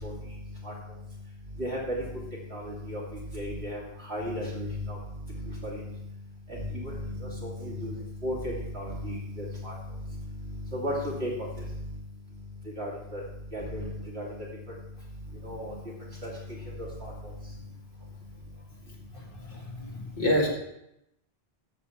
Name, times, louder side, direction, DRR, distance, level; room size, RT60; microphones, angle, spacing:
voice 1, 2.5-3.0 3.3-3.8 4.1-5.0 5.6-5.8 6.8-6.9 7.2-7.9 8.2-9.7 10.7-11.3 12.8-13.2 13.5-13.9 14.1-14.3 15.4-15.7 16.2-16.3 16.8-17.1, equal, 80° right, -4 dB, 2.7 m, -34 dB
voice 2, 19.1-20.5, left 1 dB, 55° left, -3 dB, 2.5 m, -28 dB
13.5 x 7.0 x 3.5 m, 0.83 s
omnidirectional pair, 1.1 m